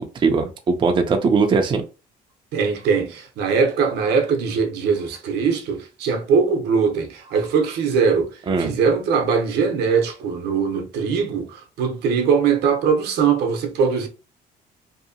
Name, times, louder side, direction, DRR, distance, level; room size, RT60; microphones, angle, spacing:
voice 1, 0.0-1.8 8.5-8.7, right 4 dB, 30° right, 0.5 m, -20 dB
voice 2, 2.5-14.1, right 5 dB, 75° right, 0.7 m, -21 dB
2.7 x 2.1 x 2.7 m
cardioid pair, 110°, 17 cm